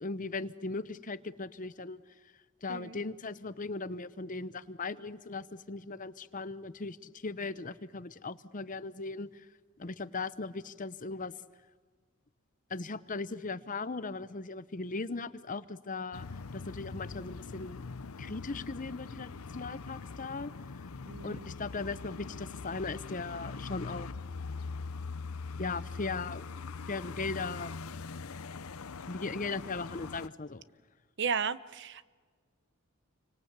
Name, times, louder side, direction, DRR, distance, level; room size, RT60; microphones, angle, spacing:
voice 1, 0.0-2.0 2.6-9.5 9.8-11.3 12.7-16.3 16.5-17.9 18.2-20.5 21.2-24.1 25.6-26.5 26.9-27.7 29.1-30.6, left 3 dB, 40° left, 14 dB, 0.9 m, -38 dB
sound 1, 16.1-30.3, left 4 dB, 85° left, 0.7 m, -42 dB
voice 2, 21.1-21.4 31.2-32.0, right 6 dB, 55° right, 16 dB, 0.9 m, -34 dB
29.0 x 24.5 x 8.3 m, 1.5 s
head